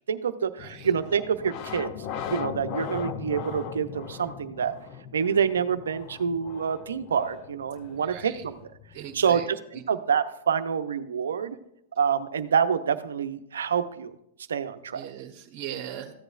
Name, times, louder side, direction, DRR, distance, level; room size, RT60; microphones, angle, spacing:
voice 1, 0.1-1.9 2.3-4.7 5.1-8.7 9.1-11.6 12.0-14.1 14.5-15.0, right 7 dB, 85° right, 10 dB, 0.7 m, -27 dB
sound 1, 0.6-9.3, left 8 dB, 45° left, 0.7 m, -39 dB
voice 2, 8.1-8.4 8.9-9.5 14.9-16.1, right 10 dB, 50° right, 3 dB, 1.1 m, -39 dB
14.5 x 8.0 x 2.5 m, 0.77 s
hypercardioid pair, 120°, 0 cm